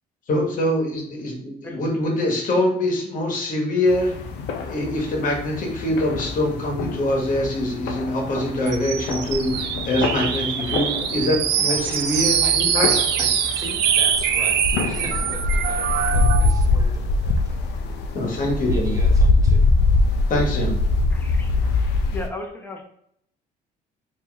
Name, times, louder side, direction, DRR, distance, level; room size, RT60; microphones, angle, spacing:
voice 1, 0.3-4.1 4.6-12.9 18.1-18.9 20.3-20.7, left 1 dB, 50° left, 0 dB, 1.2 m, -24 dB
sound 1, 3.9-22.3, left 3 dB, 85° left, 0.5 m, -24 dB
sound 2, 8.7-16.6, right 8 dB, 85° right, 0.5 m, -23 dB
voice 2, 11.7-17.7 18.7-19.6, equal, 20° right, -1 dB, 1.1 m, -39 dB
voice 3, 21.1-21.5 22.1-22.8, left 2 dB, 10° left, 2 dB, 0.8 m, -35 dB
3.1 x 2.8 x 3.8 m, 0.69 s
cardioid pair, 110°, 17 cm